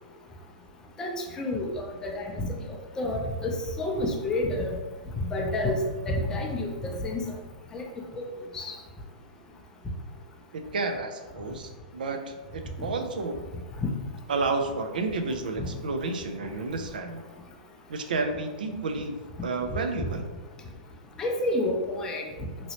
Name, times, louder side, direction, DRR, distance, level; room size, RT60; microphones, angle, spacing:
voice 1, 1.0-4.7 5.3-5.8 6.1-7.3 7.7-7.8 8.1-8.2 8.5-8.7 12.8-12.9 21.2-22.3, left 1 dB, 15° left, -1 dB, 0.5 m, -29 dB
voice 2, 10.5-13.4 14.3-17.2 17.9-20.2, right 3 dB, 85° right, 6 dB, 0.4 m, -31 dB
2.9 x 2.9 x 2.8 m, 1.2 s
hypercardioid pair, 145°, 5 cm